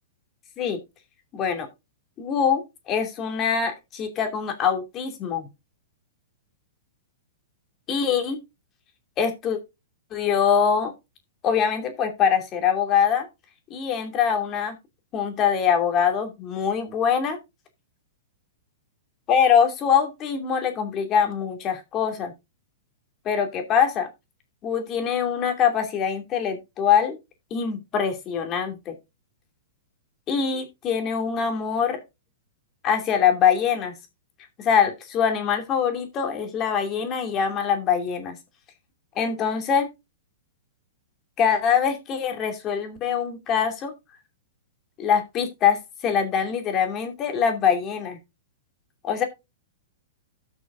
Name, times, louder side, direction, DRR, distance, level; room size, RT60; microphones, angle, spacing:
voice 1, 1.3-1.7 2.2-5.5 7.9-8.4 9.2-9.6 10.1-10.9 11.4-13.3 13.7-14.8 15.1-17.4 19.3-22.3 23.2-24.1 24.6-27.2 27.5-28.9 30.3-32.0 32.8-33.9 34.6-38.4 39.2-39.9 41.4-43.9 45.0-48.2 49.0-49.2, left 7 dB, 30° left, 2.6 m, -23 dB
17.0 x 6.2 x 2.6 m
hypercardioid pair, 140°, 0 cm